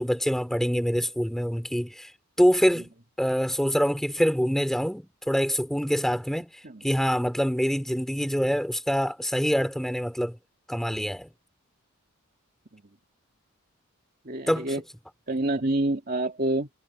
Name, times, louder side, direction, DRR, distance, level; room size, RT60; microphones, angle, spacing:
voice 1, 0.0-2.1 2.4-2.9 3.2-6.5 6.8-10.4 10.7-11.3 14.5-14.7, equal, ahead, 3.2 m, -25 dB
voice 2, 14.2-14.8 15.3-16.7, right 1 dB, 40° right, 2.1 m, -27 dB
head